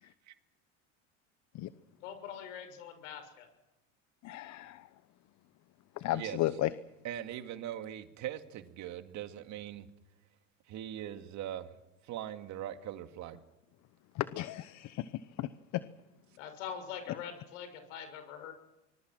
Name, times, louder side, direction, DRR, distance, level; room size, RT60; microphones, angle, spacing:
voice 1, 2.0-3.5 16.4-18.5, left 8 dB, 75° left, 8 dB, 6.6 m, -43 dB
voice 2, 4.2-4.9 6.0-6.7 14.1-15.8, left 15 dB, 50° left, 14 dB, 1.0 m, -34 dB
voice 3, 7.0-9.9 10.7-11.8 12.0-13.4, right 11 dB, 50° right, 8 dB, 2.2 m, -41 dB
25.5 x 21.0 x 6.1 m, 0.98 s
supercardioid pair, 100°, 37 cm